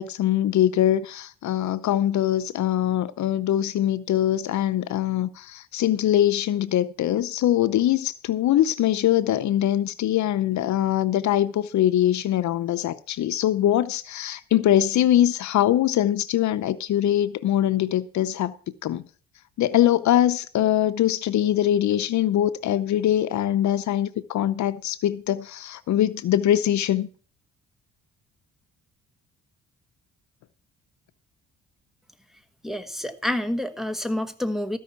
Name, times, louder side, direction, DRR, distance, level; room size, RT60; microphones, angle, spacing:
voice 1, 0.0-18.5 18.8-19.0 19.6-27.1, left 12 dB, 70° left, 0.7 m, -22 dB
voice 2, 32.6-34.8, left 1 dB, ahead, 1.2 m, -28 dB
13.5 x 5.5 x 7.1 m
cardioid pair, 90°, 30 cm